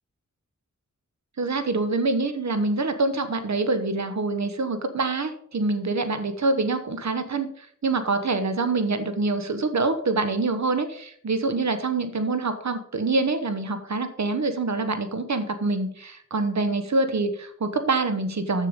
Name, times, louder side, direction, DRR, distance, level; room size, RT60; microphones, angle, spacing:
voice 1, 1.4-18.7, right 3 dB, 60° right, 9 dB, 1.2 m, -25 dB
6.9 x 6.7 x 5.3 m, 0.63 s
wide cardioid pair, 60°, 31 cm